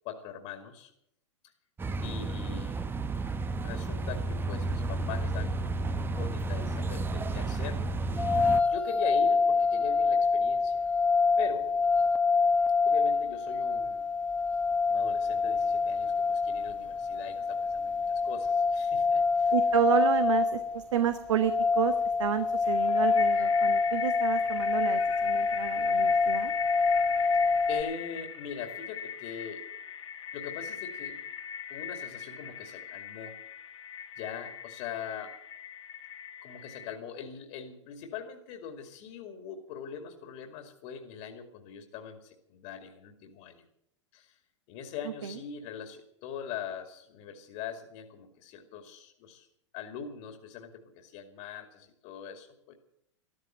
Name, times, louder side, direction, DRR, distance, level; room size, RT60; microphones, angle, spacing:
voice 1, 0.0-0.9 2.0-2.8 3.6-7.8 8.7-10.8 11.4-11.7 12.9-14.0 14.9-19.5 27.7-29.6 30.3-31.2 31.7-33.4 34.2-35.4 36.4-43.6 44.1-44.4 44.7-49.5 49.7-52.8, left 7 dB, 50° left, 5 dB, 2.4 m, -42 dB
sound 1, 1.8-8.6, right 3 dB, 15° right, 0.8 m, -32 dB
sound 2, 8.2-27.8, left 4 dB, 10° left, 1.3 m, -26 dB
voice 2, 19.5-21.9 22.2-26.5 45.2-45.4, right 10 dB, 75° right, 10 dB, 1.3 m, -30 dB
sound 3, 22.7-37.0, left 8 dB, 75° left, 2.1 m, -40 dB
14.0 x 13.0 x 7.5 m, 0.73 s
hypercardioid pair, 110°, 16 cm